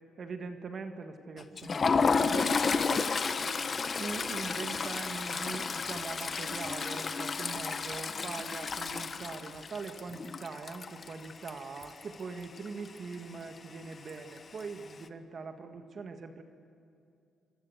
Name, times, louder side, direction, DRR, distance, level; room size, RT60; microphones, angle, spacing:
voice 1, 0.2-3.5 4.0-16.4, right 4 dB, 45° right, 6 dB, 1.7 m, -42 dB
Toilet flush, 1.4-12.1 12.4-12.7 13.0-13.1 14.1-14.6, left 5 dB, 40° left, 1.2 m, -32 dB
25.0 x 24.0 x 8.1 m, 2.5 s
cardioid pair, 90°, 0 cm